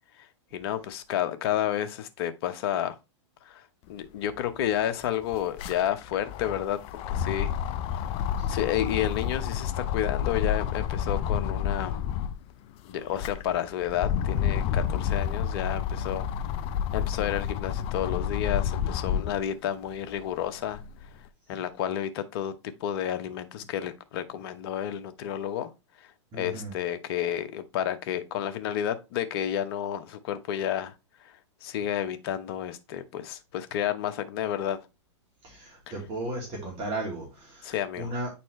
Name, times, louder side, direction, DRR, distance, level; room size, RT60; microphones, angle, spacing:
voice 1, 0.2-3.0 3.4-3.6 3.9-7.5 8.5-12.0 12.9-16.3 16.9-20.8 21.5-25.7 26.0-26.1 26.4-30.9 31.2-34.8 35.9-36.0 37.6-38.1, left 10 dB, 55° left, 1.0 m, -31 dB
sound 1, 4.3-4.4 4.6-12.4 12.9-19.4 19.9-21.1, left 9 dB, 35° left, 0.5 m, -30 dB
voice 2, 26.3-26.7 35.4-38.3, right 2 dB, 35° right, 2.7 m, -35 dB
8.8 x 4.2 x 3.2 m
hypercardioid pair, 120°, 15 cm